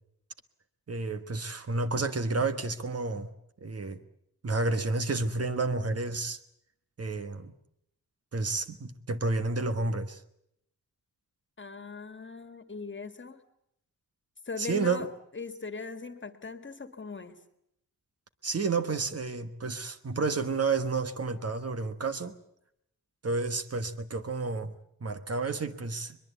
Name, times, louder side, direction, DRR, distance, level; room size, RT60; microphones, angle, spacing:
voice 1, 0.9-3.3 3.6-4.0 4.4-6.4 7.0-7.5 8.3-10.2 14.6-15.1 18.4-22.4 23.2-24.7 25.0-26.2, right 3 dB, 45° right, 9 dB, 1.4 m, -30 dB
voice 2, 11.6-13.4 14.5-15.1 15.3-17.3, left 4 dB, 35° left, 10 dB, 1.9 m, -39 dB
22.5 x 22.0 x 8.2 m, 0.76 s
wide cardioid pair, 155°, 35 cm